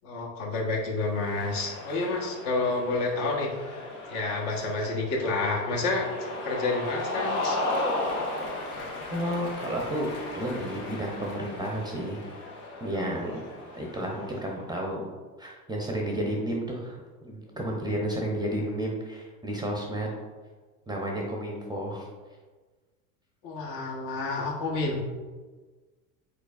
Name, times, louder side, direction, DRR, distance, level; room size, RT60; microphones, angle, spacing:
voice 1, 0.0-3.5 4.1-6.1 6.4-7.6 23.4-25.0, left 3 dB, 55° left, -1 dB, 1.2 m, -29 dB
Cheering, 1.1-14.6, left 2 dB, 80° left, 1.0 m, -35 dB
voice 2, 9.1-10.1 10.3-12.2 12.8-13.4 13.7-15.1 15.4-20.1 20.9-22.1, right 1 dB, 10° right, -1 dB, 0.6 m, -32 dB
5.0 x 4.0 x 2.4 m, 1.3 s
hypercardioid pair, 85°, 43 cm